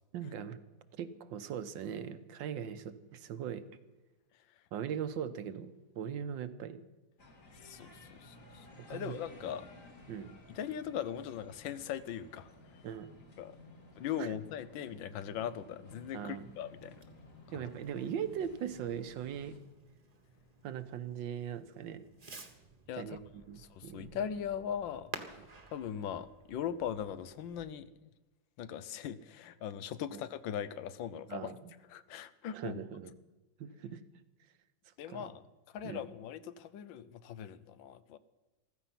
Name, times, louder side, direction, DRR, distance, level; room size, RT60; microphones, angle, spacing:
voice 1, 0.1-0.6 1.0-3.6 4.7-6.8 8.9-9.2 10.1-10.3 12.8-13.1 14.2-14.3 16.1-16.5 17.5-19.6 20.6-22.1 23.0-24.2 25.4-25.5 30.1-30.2 31.3-31.7 32.5-33.1 33.6-34.0 35.1-35.3 35.8-36.0, right 8 dB, 85° right, 11 dB, 1.6 m, -40 dB
sound 1, 7.2-19.6, left 2 dB, 45° left, 2.3 m, -56 dB
voice 2, 7.6-9.7 10.5-12.5 13.4-13.6 14.0-17.0 17.5-17.6 22.9-23.2 23.5-25.1 25.7-28.1 28.6-31.5 31.9-32.8 35.0-35.4 35.7-38.2, left 9 dB, 90° left, 14 dB, 1.5 m, -40 dB
Fireworks, 16.3-27.7, right 3 dB, 25° right, 1.1 m, -53 dB
15.0 x 13.5 x 5.8 m, 1.1 s
omnidirectional pair, 2.0 m